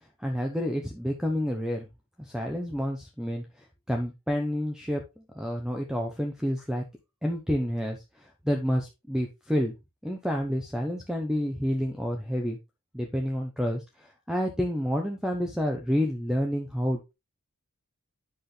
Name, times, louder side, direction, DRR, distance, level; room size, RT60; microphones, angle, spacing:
voice 1, 0.2-1.9 2.2-3.4 3.9-5.0 5.3-6.8 7.2-9.7 10.0-12.6 12.9-17.1, equal, 5° right, 3 dB, 0.9 m, -29 dB
8.1 x 6.2 x 3.3 m, 0.24 s
head